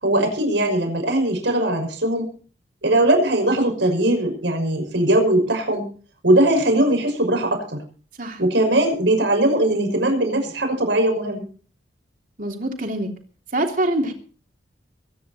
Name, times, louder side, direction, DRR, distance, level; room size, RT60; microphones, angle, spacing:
voice 1, 0.0-2.3 2.8-5.8 6.2-7.8 8.4-11.5, right 1 dB, 85° right, 4 dB, 6.0 m, -20 dB
voice 2, 12.4-13.1 13.5-14.1, right 1 dB, 50° right, 3 dB, 3.3 m, -24 dB
23.0 x 10.5 x 4.4 m, 0.40 s
head